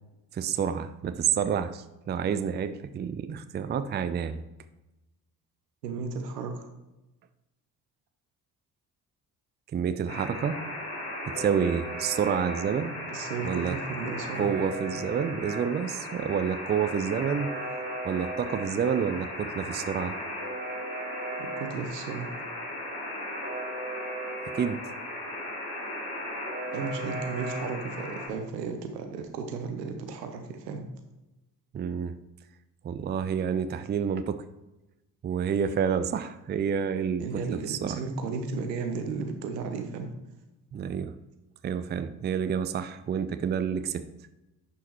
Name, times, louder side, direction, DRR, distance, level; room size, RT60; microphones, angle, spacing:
voice 1, 0.3-4.4 9.7-10.6 11.4-12.9 13.4-13.7 14.4-17.5 18.0-20.1 24.5-24.8 31.7-32.1 32.8-34.4 35.2-38.0 40.7-41.1 41.6-44.0, right 7 dB, 20° right, 11 dB, 0.5 m, -29 dB
voice 2, 5.8-6.7 13.1-14.5 21.4-22.3 26.7-30.9 37.2-40.1, right 4 dB, 80° right, 5 dB, 1.0 m, -34 dB
Alarm, 10.1-28.3, equal, 85° left, 2.6 m, -36 dB
11.0 x 5.5 x 3.0 m, 0.99 s
figure-of-eight pair, 45°, 48 cm